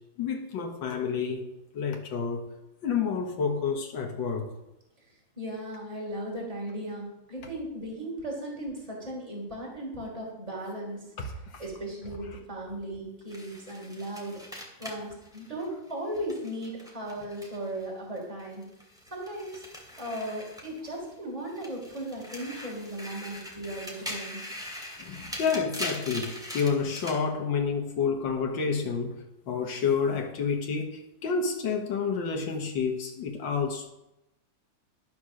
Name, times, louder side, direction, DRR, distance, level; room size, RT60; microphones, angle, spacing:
voice 1, 0.2-1.4 1.7-2.4 2.8-4.5 11.2-11.6 25.0-29.1 29.5-33.9, left 5 dB, 85° left, 2 dB, 2.0 m, -29 dB
voice 2, 5.4-11.1 11.6-18.6 19.1-19.6 20.0-24.4, right 1 dB, 20° right, -2 dB, 3.4 m, -37 dB
sound 1, 13.3-17.9 18.2-21.1 21.5-27.2, equal, ahead, 2.6 m, -41 dB
11.5 x 6.1 x 6.3 m, 0.90 s
omnidirectional pair, 2.0 m